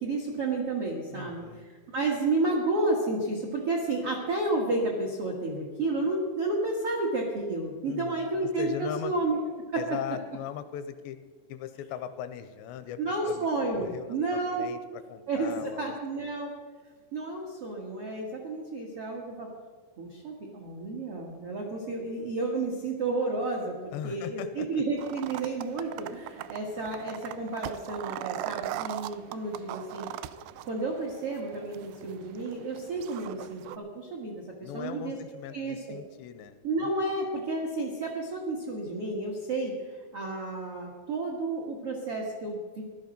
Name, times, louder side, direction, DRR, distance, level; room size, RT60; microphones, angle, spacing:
voice 1, 0.0-9.4 9.7-9.8 13.0-14.7 15.3-16.5 17.1-19.5 20.0-30.1 30.6-35.2 35.5-35.9 36.6-42.8, right 2 dB, 65° right, 0 dB, 1.4 m, -31 dB
voice 2, 1.1-1.7 7.8-8.3 8.6-9.1 9.8-11.2 11.5-13.5 13.8-14.8 15.1-16.3 22.2-22.4 23.9-24.8 34.6-36.6, left 9 dB, 80° left, 10 dB, 2.8 m, -39 dB
sound 1, 25.0-33.8, right 13 dB, 85° right, 2.5 m, -40 dB
16.0 x 12.5 x 5.2 m, 1.5 s
omnidirectional pair, 5.2 m